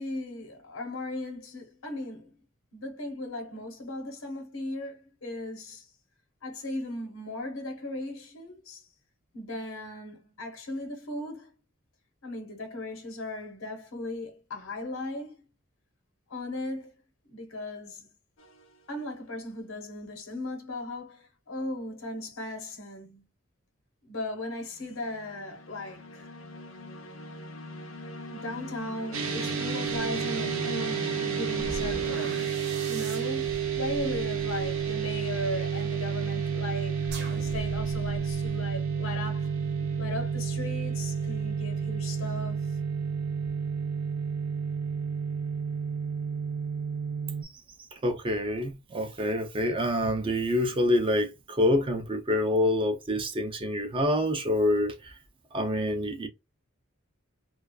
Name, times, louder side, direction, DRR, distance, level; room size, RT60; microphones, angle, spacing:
voice 1, 0.0-2.4 2.7-5.9 6.4-8.9 9.3-11.5 12.2-15.3 16.3-16.9 17.3-18.1 18.9-23.3 24.0-26.3 28.3-32.6 32.9-39.5 40.0-42.8, left 2 dB, 90° left, 1.0 m, -37 dB
sound 1, 18.4-18.8 24.7-32.5, left 2 dB, 70° left, 0.6 m, -41 dB
sound 2, 29.1-47.4, right 6 dB, 85° right, 0.7 m, -31 dB
sound 3, 31.5-35.6 37.0-38.5, right 1 dB, 55° right, 0.8 m, -42 dB
voice 2, 48.0-55.1 55.5-56.3, left 1 dB, 25° right, 0.4 m, -26 dB
2.4 x 2.3 x 2.2 m
head